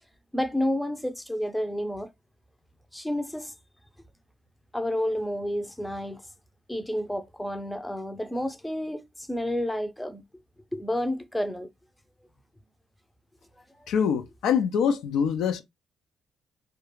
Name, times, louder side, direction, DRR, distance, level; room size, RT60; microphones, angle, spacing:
voice 1, 0.3-2.1 2.9-3.5 4.7-6.2 6.7-10.2 10.7-11.7, left 1 dB, 5° left, 0.5 m, -30 dB
voice 2, 13.9-15.6, left 7 dB, 85° left, 0.4 m, -24 dB
2.3 x 2.2 x 3.0 m
cardioid pair, 90°, 0 cm